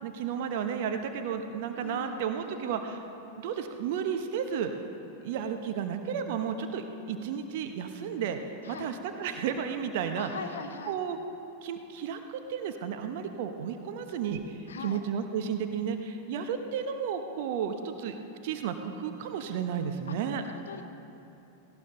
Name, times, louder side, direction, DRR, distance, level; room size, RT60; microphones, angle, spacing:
voice 1, 0.0-3.0 3.4-4.7 5.2-8.4 8.7-10.3 10.9-11.2 11.6-18.1 18.4-20.4, right 7 dB, 50° right, 7 dB, 1.0 m, -33 dB
voice 2, 1.8-2.8 8.6-8.9 10.2-11.0 14.7-15.0 20.0-20.8, left 5 dB, 65° left, 7 dB, 0.8 m, -42 dB
17.5 x 17.5 x 3.9 m, 2.9 s
figure-of-eight pair, 90°, 0 cm